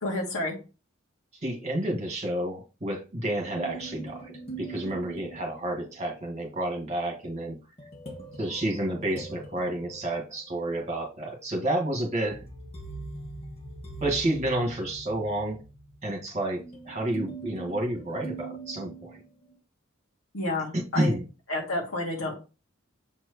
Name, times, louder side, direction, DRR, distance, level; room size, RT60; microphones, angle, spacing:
voice 1, 0.0-0.5 20.3-21.1 21.5-22.3, left 2 dB, 80° left, -2 dB, 2.1 m, -30 dB
voice 2, 1.4-4.3 4.6-7.6 8.4-12.4 14.0-15.6 16.0-19.2 20.7-21.2, right 1 dB, 35° right, 0 dB, 1.9 m, -30 dB
sound 1, 3.5-6.1 7.8-10.8 12.2-19.5, right 3 dB, 30° left, 1.3 m, -42 dB
7.3 x 4.7 x 3.1 m, 0.32 s
head